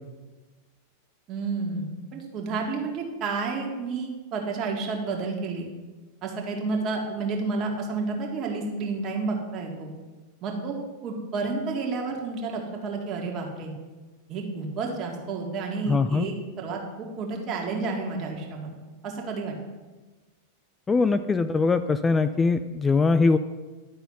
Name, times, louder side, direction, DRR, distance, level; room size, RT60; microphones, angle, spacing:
voice 1, 1.3-5.7 6.2-9.9 10.4-10.7 11.0-13.7 14.3-18.7 19.0-19.6, right 4 dB, 40° right, 0 dB, 1.9 m, -30 dB
voice 2, 15.9-16.3 20.9-23.4, left 4 dB, 15° left, 12 dB, 0.3 m, -22 dB
11.0 x 4.1 x 5.6 m, 1.3 s
hypercardioid pair, 110°, 0 cm